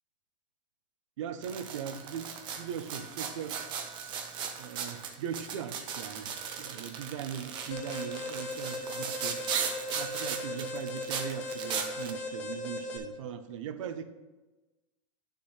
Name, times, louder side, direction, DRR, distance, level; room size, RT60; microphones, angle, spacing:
voice 1, 1.2-2.3 2.6-3.6 4.6-9.4 9.9-14.0, right 8 dB, 65° right, 10 dB, 0.7 m, -39 dB
sound 1, 1.4-12.1, right 7 dB, 30° right, 0.7 m, -37 dB
Alarm, 7.7-13.0, left 2 dB, 60° left, 1.4 m, -38 dB
9.7 x 6.8 x 3.2 m, 1.1 s
supercardioid pair, 155°, 17 cm